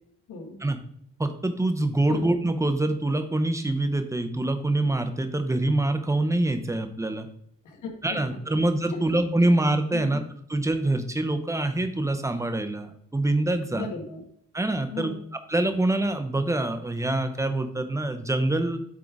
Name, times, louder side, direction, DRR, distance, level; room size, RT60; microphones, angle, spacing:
voice 1, 0.3-0.6 2.1-2.3 7.6-8.2 8.5-8.6 8.9-9.0 9.4-9.5 9.9-10.2 13.7-14.2 14.9-15.2, left 3 dB, 70° left, 2 dB, 1.7 m, -37 dB
voice 2, 1.2-7.3 8.0-10.2 10.5-13.9 14.5-15.1 15.5-18.8, right 2 dB, 10° right, 8 dB, 0.6 m, -25 dB
8.0 x 3.7 x 4.8 m, 0.69 s
cardioid pair, 135°, 31 cm